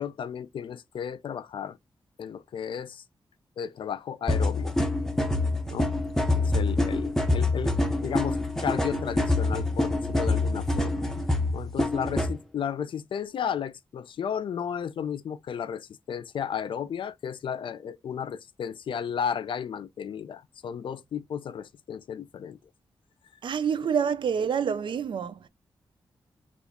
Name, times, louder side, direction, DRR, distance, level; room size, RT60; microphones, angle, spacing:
voice 1, 0.0-1.8 2.2-3.0 3.6-4.8 5.7-5.9 6.4-11.0 11.5-22.6, left 8 dB, 65° left, 0.4 m, -34 dB
sound 1, 4.3-12.3, left 2 dB, 5° left, 0.5 m, -26 dB
voice 2, 23.4-25.4, right 7 dB, 65° right, 0.4 m, -27 dB
2.9 x 2.4 x 3.5 m
wide cardioid pair, 160°, 9 cm